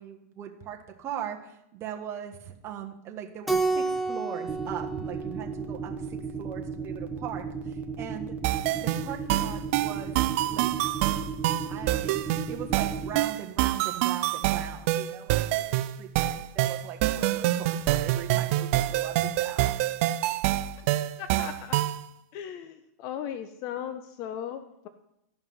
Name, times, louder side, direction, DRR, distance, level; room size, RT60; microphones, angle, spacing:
voice 1, 0.0-8.4 8.7-10.9 11.7-19.7, right 9 dB, 30° right, 2 dB, 1.5 m, -40 dB
Keyboard (musical), 3.5-6.1, right 3 dB, ahead, 0.6 m, -30 dB
sound 1, 4.5-13.2, right 5 dB, 15° right, 1.1 m, -35 dB
sound 2, 8.4-22.0, right 15 dB, 50° right, 0.5 m, -26 dB
voice 2, 21.2-21.8 22.3-24.9, left 9 dB, 40° left, 10 dB, 0.7 m, -37 dB
13.0 x 5.6 x 5.5 m, 0.81 s
hypercardioid pair, 135°, 9 cm